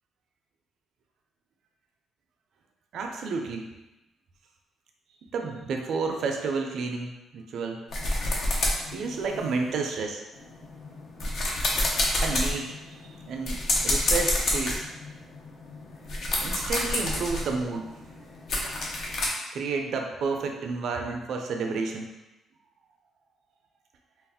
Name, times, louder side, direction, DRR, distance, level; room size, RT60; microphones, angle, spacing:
voice 1, 2.9-3.7 5.3-7.8 8.9-10.2 12.2-12.8 13.3-14.9 16.4-17.8 19.5-22.1, right 4 dB, 70° right, 3 dB, 0.3 m, -30 dB
sound 1, 7.9-9.8 10.3-19.3, left 1 dB, 60° left, 0.6 m, -29 dB
2.3 x 2.0 x 3.5 m, 0.99 s
cardioid pair, 90°, 0 cm